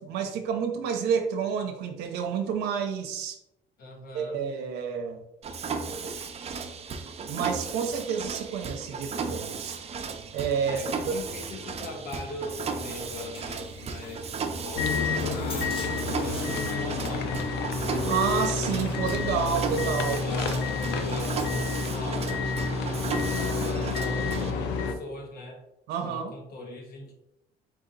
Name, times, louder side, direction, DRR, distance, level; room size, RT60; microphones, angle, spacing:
voice 1, 0.0-3.4 4.1-5.2 7.3-9.8 10.3-11.1 17.8-20.2 25.9-26.3, right 7 dB, 80° right, 4 dB, 0.6 m, -29 dB
voice 2, 3.8-4.5 10.6-14.3 14.6-17.5 20.0-22.5 23.3-25.6 26.0-27.1, left 2 dB, 65° left, 1 dB, 1.3 m, -40 dB
Mechanisms, 5.4-24.5, right 5 dB, 40° right, 0.5 m, -35 dB
sound 1, 12.8-23.5, left 2 dB, 35° left, 1.0 m, -48 dB
sound 2, 14.7-24.9, left 4 dB, 90° left, 0.6 m, -29 dB
4.3 x 2.8 x 3.9 m, 0.84 s
cardioid pair, 110°, 17 cm